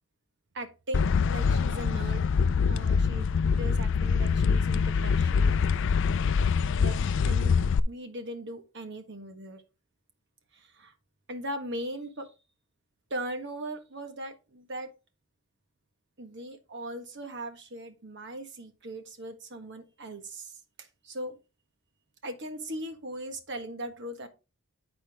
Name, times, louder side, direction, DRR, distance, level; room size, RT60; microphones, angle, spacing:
voice 1, 0.5-2.2 2.7-3.3 3.6-6.0 6.3-7.0 7.3-7.6 7.9-9.6 10.5-10.9 11.3-12.3 13.1-14.9 16.2-21.4 22.2-24.3, right 1 dB, 50° right, 6 dB, 1.5 m, -39 dB
sound 1, 0.9-7.8, left 5 dB, 55° left, 0.4 m, -24 dB
10.0 x 4.4 x 3.6 m, 0.29 s
head